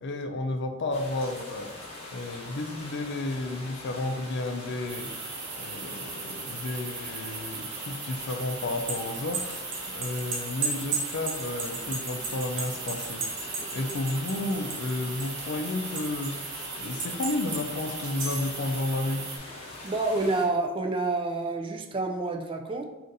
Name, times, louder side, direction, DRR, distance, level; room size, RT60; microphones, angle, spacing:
voice 1, 0.0-1.7 2.1-5.1 5.6-16.3 16.8-19.2, left 2 dB, 55° left, 6 dB, 0.4 m, -32 dB
sound 1, 0.9-20.4, left 2 dB, 25° left, 1.1 m, -42 dB
sound 2, 4.9-19.4, right 5 dB, 55° right, 0.6 m, -39 dB
sound 3, 8.6-14.9 15.2-16.4 17.0-17.6 18.0-18.6, right 5 dB, 90° right, 1.2 m, -33 dB
voice 2, 19.8-22.8, right 2 dB, 25° right, 2 dB, 0.3 m, -28 dB
3.9 x 2.5 x 3.9 m, 1.1 s
head